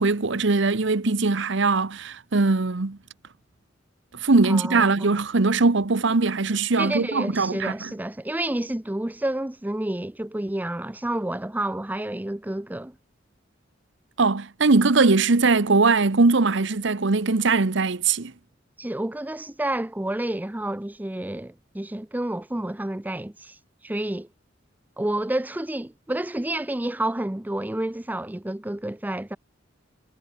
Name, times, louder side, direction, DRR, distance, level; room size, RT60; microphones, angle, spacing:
voice 1, 0.0-3.0 4.2-7.9 14.2-18.3, right 3 dB, 65° right, 1.0 m, -21 dB
voice 2, 4.4-5.2 6.8-12.9 18.8-23.6 23.8-24.3 25.0-29.4, right 1 dB, 10° right, 0.5 m, -29 dB
head